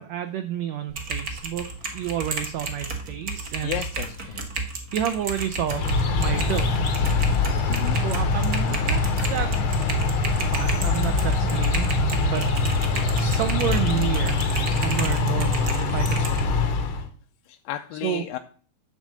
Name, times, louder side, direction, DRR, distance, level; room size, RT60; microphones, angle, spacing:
voice 1, 0.0-1.7 1.9-3.9 4.2-4.4 4.9-5.9 6.2-7.0 7.9-9.0 9.3-9.5 10.5-11.9 12.2-12.5 13.2-14.4 14.7-16.4 18.0-18.2, right 10 dB, 85° right, 8 dB, 1.5 m, -30 dB
Typing, 0.9-16.4, right 3 dB, 65° right, 0.8 m, -33 dB
voice 2, 3.6-4.5 7.7-8.0 17.5-18.4, left 13 dB, 85° left, 5 dB, 2.2 m, -33 dB
sound 1, 5.7-17.1, left 3 dB, 70° left, 1.3 m, -23 dB
10.5 x 3.8 x 7.4 m, 0.44 s
omnidirectional pair, 3.9 m